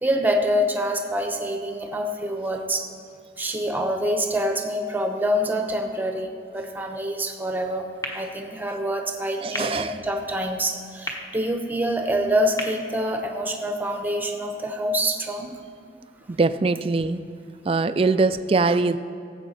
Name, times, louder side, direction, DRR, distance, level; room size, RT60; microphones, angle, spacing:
voice 1, 0.0-2.9 3.4-7.9 8.1-15.5, equal, 10° right, 4 dB, 0.8 m, -26 dB
sound 1, 8.0-14.0, left 1 dB, 15° left, 1.0 m, -39 dB
voice 2, 9.4-9.9 16.3-17.2 17.7-19.0, right 3 dB, 30° right, 12 dB, 0.3 m, -22 dB
17.0 x 7.9 x 4.2 m, 2.4 s
head